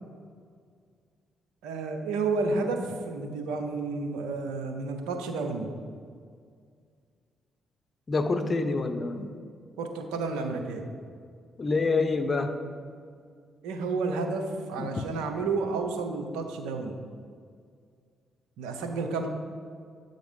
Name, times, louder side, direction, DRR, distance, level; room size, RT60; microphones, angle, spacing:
voice 1, 1.6-5.7 9.8-10.9 13.6-17.0 18.6-19.3, right 3 dB, 85° right, 6 dB, 0.6 m, -31 dB
voice 2, 8.1-9.3 11.6-12.5 14.8-15.0, left 3 dB, 40° left, 8 dB, 0.6 m, -27 dB
8.0 x 4.0 x 5.1 m, 2.1 s
hypercardioid pair, 50°, 0 cm